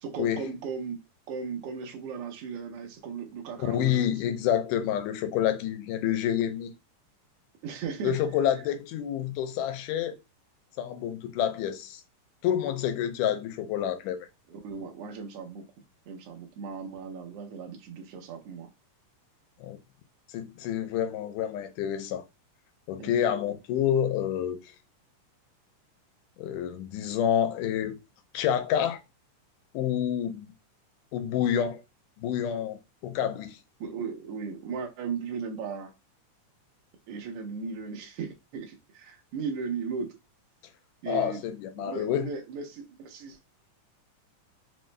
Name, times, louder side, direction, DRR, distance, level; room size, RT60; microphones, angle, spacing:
voice 1, 0.0-1.0 1.3-4.3 7.6-8.2 14.5-15.6 16.1-18.7 23.0-23.3 33.8-35.9 37.1-40.1 41.0-41.4 41.8-43.4, right 5 dB, 85° right, 1.3 m, -36 dB
voice 2, 3.6-6.7 8.0-10.2 10.8-12.0 12.4-14.3 19.6-19.8 20.3-22.2 22.9-24.6 26.4-28.0 28.3-29.0 29.7-30.5 31.1-31.8 32.2-33.6 41.1-42.3, left 10 dB, 85° left, 2.1 m, -28 dB
5.2 x 2.0 x 3.1 m
omnidirectional pair, 3.6 m